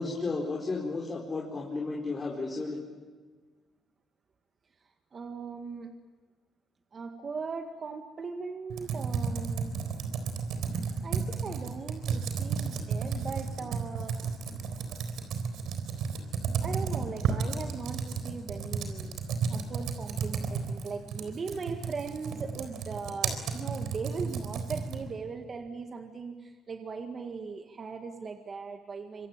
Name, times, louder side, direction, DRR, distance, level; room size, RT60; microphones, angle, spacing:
voice 1, 0.0-2.8, left 3 dB, 30° left, -1 dB, 4.6 m, -33 dB
voice 2, 5.1-5.9 6.9-9.8 11.0-14.2 16.6-19.2 19.5-29.3, right 5 dB, 40° right, 5 dB, 1.8 m, -39 dB
Computer keyboard, 8.7-25.1, right 6 dB, 80° right, 4.1 m, -33 dB
26.0 x 24.5 x 8.9 m, 1.4 s
cardioid pair, 110°, 0 cm